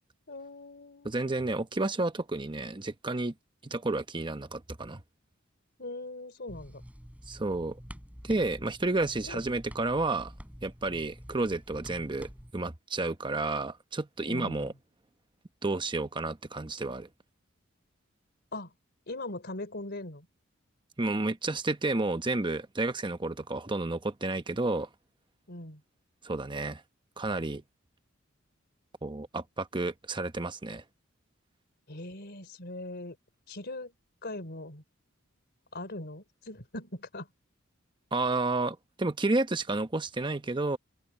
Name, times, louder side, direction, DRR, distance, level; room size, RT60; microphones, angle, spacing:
voice 1, 0.3-1.3 5.8-6.8 9.3-9.4 14.3-14.7 18.5-18.7 19.1-20.3 25.5-25.8 31.9-33.2 33.5-33.9 34.2-34.8 35.7-37.3, left 2 dB, 55° left, 4.0 m, -40 dB
voice 2, 1.0-3.3 3.6-5.0 7.3-7.8 8.2-10.3 10.6-14.7 15.6-17.1 21.0-24.9 26.2-26.8 27.2-27.6 29.0-30.8 38.1-40.8, right 2 dB, 25° right, 1.0 m, -31 dB
sound 1, 6.5-12.5, equal, 5° right, 4.8 m, -48 dB
open air
head